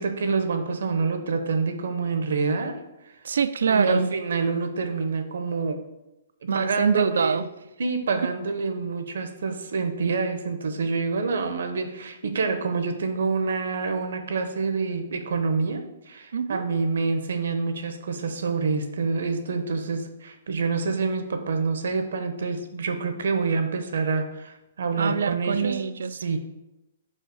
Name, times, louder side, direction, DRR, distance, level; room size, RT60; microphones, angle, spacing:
voice 1, 0.0-2.8 3.6-5.8 6.4-7.4 7.8-25.8 26.2-26.4, right 4 dB, 70° right, 7 dB, 0.9 m, -27 dB
voice 2, 3.2-4.1 6.5-7.4 16.3-16.7 25.0-26.2, right 6 dB, 90° right, 14 dB, 0.4 m, -24 dB
5.5 x 4.4 x 4.8 m, 0.93 s
hypercardioid pair, 175°, 0 cm